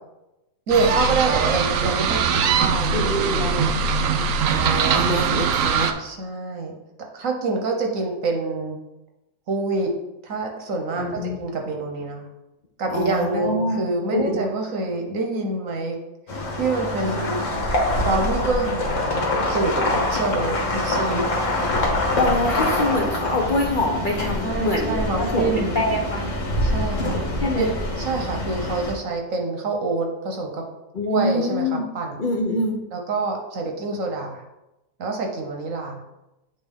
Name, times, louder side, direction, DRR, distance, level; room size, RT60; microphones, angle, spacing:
voice 1, 0.7-4.4 6.0-6.8 7.1-8.8 9.5-9.9 10.2-12.3 12.8-15.9 16.6-17.4 18.0-21.3 24.4-25.8 26.6-27.2 27.6-27.7 28.0-30.6 31.1-32.2 32.9-34.4 35.0-36.0, right 3 dB, 55° right, 2 dB, 1.1 m, -26 dB
sound 1, 0.7-5.9, right 6 dB, 90° right, 0.7 m, -21 dB
voice 2, 2.9-3.7 4.5-5.9 11.0-11.4 12.9-13.8 14.1-14.4 22.1-26.2 27.4-27.7 30.9-31.9 32.2-32.8, left 1 dB, 75° left, 0 dB, 0.4 m, -25 dB
sound 2, 16.3-28.9, left 1 dB, 50° left, 1.5 m, -25 dB
8.0 x 4.1 x 3.6 m, 0.97 s
omnidirectional pair, 2.0 m